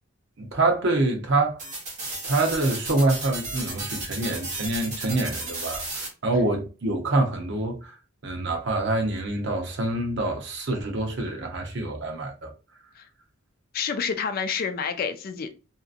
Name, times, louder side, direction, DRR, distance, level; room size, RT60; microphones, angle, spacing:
voice 1, 0.4-1.6 2.2-8.0 8.2-12.5, right 2 dB, 55° right, 0.8 m, -26 dB
sound 1, 1.6-6.1, right 2 dB, 35° right, 1.2 m, -34 dB
voice 2, 13.7-15.5, left 6 dB, 45° left, 0.3 m, -28 dB
2.7 x 2.5 x 2.4 m
head